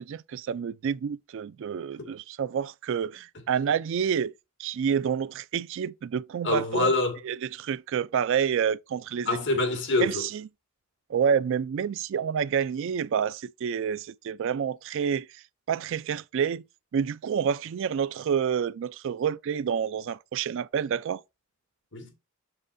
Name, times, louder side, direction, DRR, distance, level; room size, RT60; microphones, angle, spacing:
voice 1, 0.0-4.3 4.6-6.9 7.2-9.3 10.0-10.4 11.1-15.4 15.7-16.6 16.9-21.2, right 7 dB, 60° right, 0.3 m, -28 dB
voice 2, 6.4-7.2 9.3-10.2 21.9-22.1, left 2 dB, 55° left, 2.1 m, -25 dB
7.6 x 6.6 x 2.6 m
head